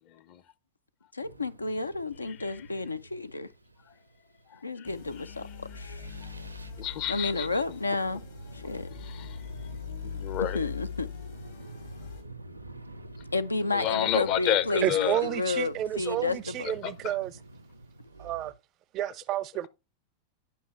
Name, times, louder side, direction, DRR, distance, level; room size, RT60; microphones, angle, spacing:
voice 1, 0.1-0.4 2.2-2.6 4.5-4.9 5.2-5.3 6.2-6.3 6.8-7.5 9.0-9.4 10.0-10.7 13.7-15.2 16.8-17.1, left 11 dB, 40° left, 0.7 m, -31 dB
voice 2, 1.1-3.5 4.6-5.5 5.7-6.1 7.1-8.2 8.5-8.9 10.4-11.1 13.3-16.5, left 3 dB, 80° left, 0.4 m, -31 dB
sound 1, 1.2-18.5, right 2 dB, 85° right, 0.6 m, -47 dB
sound 2, 4.8-12.2, left 8 dB, 60° left, 2.2 m, -42 dB
voice 3, 14.8-17.3 18.2-18.5 18.9-19.7, right 13 dB, 35° right, 0.4 m, -30 dB
10.0 x 5.6 x 3.0 m
figure-of-eight pair, 90°, 0 cm